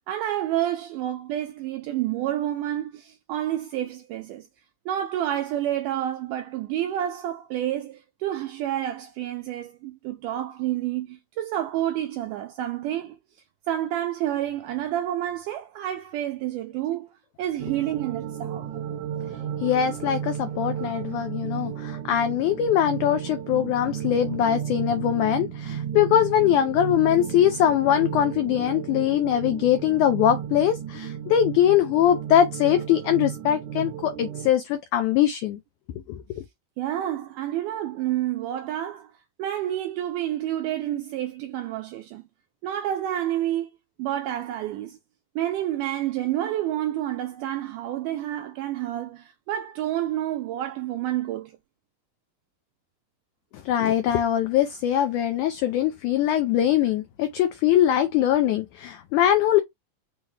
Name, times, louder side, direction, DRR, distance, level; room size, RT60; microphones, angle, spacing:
voice 1, 0.1-4.5 4.9-13.2 13.7-17.1 17.4-18.7 36.8-39.1 39.4-42.2 42.6-43.7 44.0-45.0 45.4-51.6, right 12 dB, 85° right, 1.8 m, -29 dB
sound 1, 17.6-34.5, right 9 dB, 70° right, 1.8 m, -33 dB
voice 2, 19.6-35.6 36.1-36.4 53.5-59.6, left 10 dB, 85° left, 1.7 m, -22 dB
5.9 x 2.2 x 3.2 m
omnidirectional pair, 4.2 m